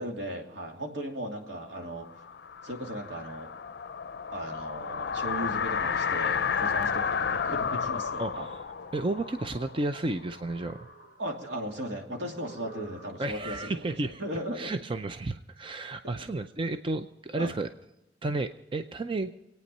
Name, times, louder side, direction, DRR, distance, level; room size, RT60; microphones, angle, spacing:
voice 1, 0.0-2.3 2.6-3.5 4.3-8.5 11.2-14.7 17.4-17.6, equal, 75° right, 1 dB, 2.8 m, -37 dB
sound 1, 1.8-10.6, left 6 dB, 65° left, 0.5 m, -32 dB
voice 2, 8.2-8.6 8.9-10.9 13.2-14.2 14.6-17.7 18.2-19.3, right 2 dB, 30° right, 8 dB, 0.5 m, -32 dB
sound 2, 8.5-9.9 10.3-11.5 12.3-13.6, right 4 dB, 55° right, 1.8 m, -51 dB
24.5 x 9.3 x 5.4 m, 0.90 s
head